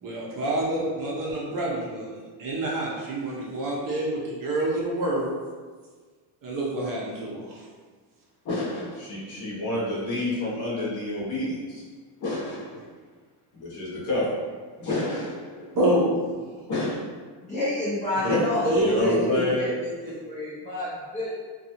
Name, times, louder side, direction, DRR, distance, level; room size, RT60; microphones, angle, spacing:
voice 1, 0.0-5.3 6.4-7.7 15.7-16.5 18.2-18.4 18.6-19.4, right 1 dB, 45° right, -4 dB, 0.6 m, -27 dB
voice 2, 8.4-11.8 12.2-12.8 13.5-14.3 14.8-15.8 16.7-17.0 18.3-19.7, left 1 dB, 40° left, -6 dB, 0.8 m, -29 dB
voice 3, 17.4-21.3, left 1 dB, 20° left, -10 dB, 0.3 m, -29 dB
2.6 x 2.3 x 2.7 m, 1.5 s
cardioid pair, 175°, 46 cm